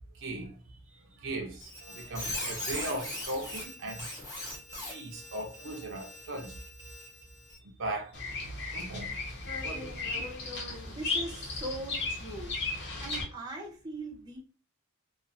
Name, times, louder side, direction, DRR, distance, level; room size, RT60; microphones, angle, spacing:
voice 1, 0.2-0.5 0.9-4.1 4.9-6.6 7.8-8.2 8.7-9.1 9.6-10.1, right 1 dB, 60° right, 0.6 m, -38 dB
Squeak, 1.6-7.6, left 1 dB, 15° left, 1.0 m, -40 dB
Bird vocalization bird call bird song, 8.1-13.2, left 3 dB, 55° left, 0.8 m, -35 dB
voice 2, 10.9-12.5 13.0-14.4, right 2 dB, 20° right, 0.6 m, -40 dB
2.4 x 2.4 x 2.5 m
head